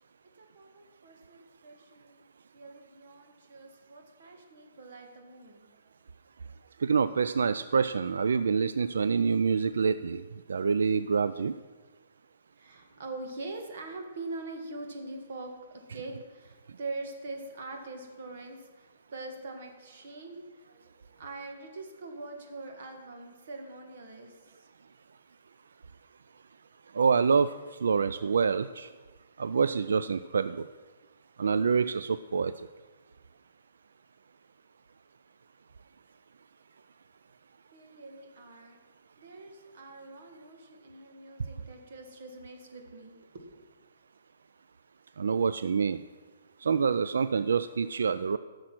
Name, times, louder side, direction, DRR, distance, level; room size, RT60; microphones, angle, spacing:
voice 1, 0.4-2.2 2.5-5.7 12.6-24.7 37.7-38.8 39.2-43.6, right 2 dB, 45° right, 4 dB, 1.6 m, -43 dB
voice 2, 6.8-10.2 10.5-11.5 26.9-27.5 27.8-28.9 29.4-30.6 31.4-32.5 45.2-46.0 46.6-48.4, right 5 dB, 85° right, 13 dB, 0.3 m, -26 dB
14.0 x 6.4 x 6.0 m, 1.4 s
hypercardioid pair, 180°, 0 cm